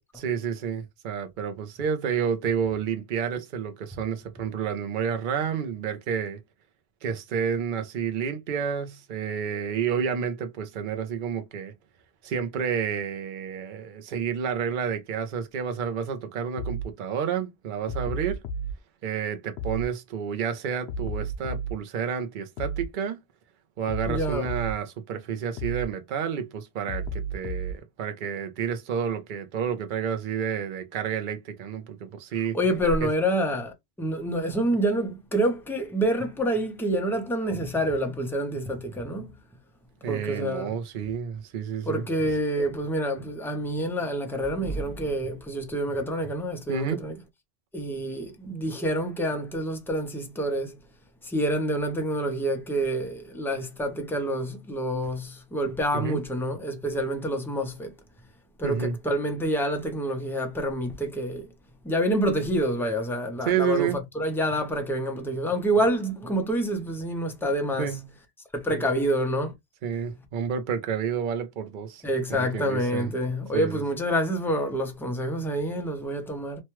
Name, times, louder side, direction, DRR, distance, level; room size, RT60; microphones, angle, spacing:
voice 1, 0.2-6.4 7.0-11.7 12.2-18.4 19.0-23.2 23.8-32.6 33.0-33.1 40.0-42.0 46.7-47.0 55.9-56.2 58.6-59.0 63.5-64.0 67.8-68.1 68.7-68.8 69.8-72.0 72.3-73.1 73.5-73.8, right 7 dB, 55° right, 0.7 m, -30 dB
sound 1, 16.6-16.9 17.9-18.7 19.6-19.9 20.9-21.8 22.6-22.9 23.9-24.8 25.6-25.9 26.9-27.8, right 2 dB, 80° left, 0.9 m, -32 dB
voice 2, 24.1-24.5 32.5-39.3 40.1-40.7 41.9-47.2 47.7-50.7 51.2-57.9 58.6-61.5 61.8-63.9 64.1-67.9 68.6-69.5 72.0-76.6, right 1 dB, 5° left, 0.5 m, -27 dB
3.1 x 2.2 x 2.9 m
omnidirectional pair, 1.1 m